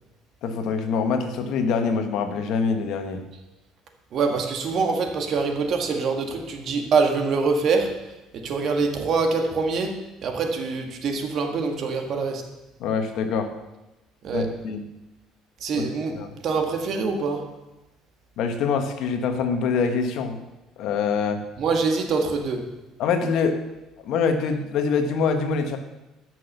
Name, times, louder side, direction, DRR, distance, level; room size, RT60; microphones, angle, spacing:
voice 1, 0.4-3.2 12.8-13.5 14.3-14.9 15.7-16.3 18.4-20.4 20.8-21.4 23.0-23.6 24.0-25.8, left 5 dB, 65° left, 1.4 m, -25 dB
voice 2, 4.1-12.5 14.2-14.6 15.6-16.2 16.4-17.5 21.6-22.7, right 4 dB, 45° right, 1.8 m, -25 dB
14.0 x 6.3 x 6.7 m
cardioid pair, 140°, 0 cm